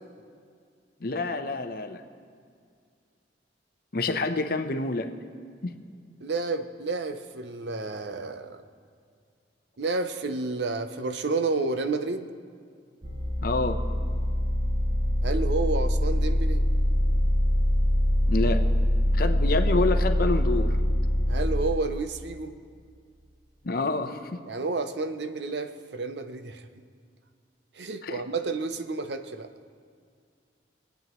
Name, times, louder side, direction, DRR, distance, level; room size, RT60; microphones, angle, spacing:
voice 1, 1.0-2.0 3.9-5.1 5.6-5.7 13.4-13.8 18.3-18.6 19.1-20.8 23.6-24.4 28.0-28.2, left 3 dB, 55° left, 7 dB, 0.7 m, -27 dB
voice 2, 6.2-8.6 9.8-12.3 15.2-16.6 21.3-22.5 24.5-26.7 27.8-29.5, right 3 dB, 70° right, 9 dB, 0.6 m, -30 dB
sound 1, 13.0-21.6, left 1 dB, 35° right, 1.6 m, -24 dB
24.0 x 9.1 x 3.0 m, 2.1 s
head